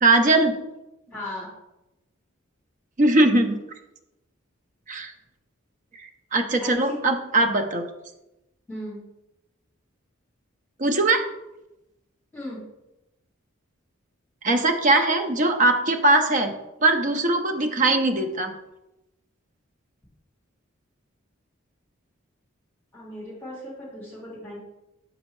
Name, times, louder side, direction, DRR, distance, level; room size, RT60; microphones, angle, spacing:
voice 1, 0.0-0.5 3.0-3.6 4.9-5.1 6.0-7.8 10.8-11.2 14.4-16.5 16.8-18.5, right 2 dB, 40° right, 6 dB, 0.6 m, -20 dB
voice 2, 1.1-1.5 6.6-7.0 8.7-9.0 12.3-12.6 22.9-24.6, left 1 dB, 10° left, -6 dB, 2.1 m, -36 dB
6.1 x 5.3 x 3.1 m, 0.93 s
head